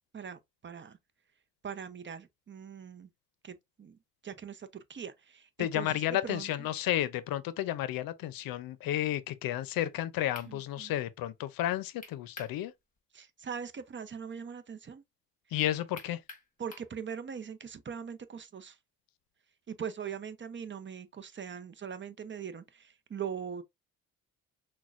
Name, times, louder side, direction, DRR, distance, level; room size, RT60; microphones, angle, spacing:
voice 1, 0.1-1.0 1.6-3.1 3.4-4.0 4.2-6.5 10.5-10.9 13.1-15.0 16.6-18.8 19.7-23.6, right 7 dB, 35° right, 0.6 m, -41 dB
voice 2, 5.6-12.7 15.5-16.2, left 13 dB, 80° left, 0.6 m, -32 dB
sound 1, 10.3-10.5 12.0-12.6 13.0-13.1 16.0-16.9, left 3 dB, 25° left, 1.3 m, -47 dB
6.0 x 2.2 x 2.4 m
cardioid pair, 80°, 34 cm